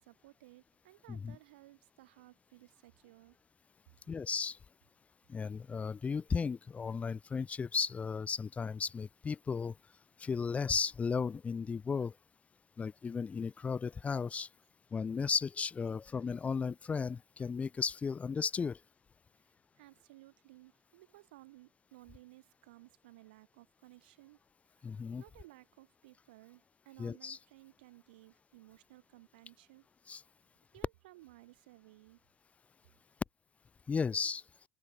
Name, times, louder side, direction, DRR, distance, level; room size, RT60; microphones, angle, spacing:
voice 1, 0.0-3.4 19.3-24.4 24.8-29.9 30.7-32.2, right 19 dB, 75° right, 3.8 m, -58 dB
voice 2, 4.1-4.6 5.3-9.8 10.2-12.1 12.8-14.5 14.9-18.8 24.8-25.2 27.0-27.4 30.1-30.2 33.9-34.4, left 5 dB, 25° left, 0.6 m, -35 dB
open air
hypercardioid pair, 70°, 5 cm